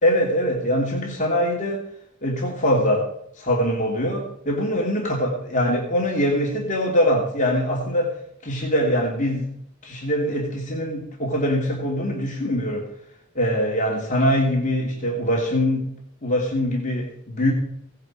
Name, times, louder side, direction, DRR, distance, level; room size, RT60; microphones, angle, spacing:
voice 1, 0.0-1.8 2.2-3.1 3.4-8.1 8.4-9.5 9.8-12.8 13.3-15.9 16.2-17.5, equal, 40° left, -2 dB, 2.8 m, -23 dB
17.0 x 10.5 x 4.8 m, 0.72 s
head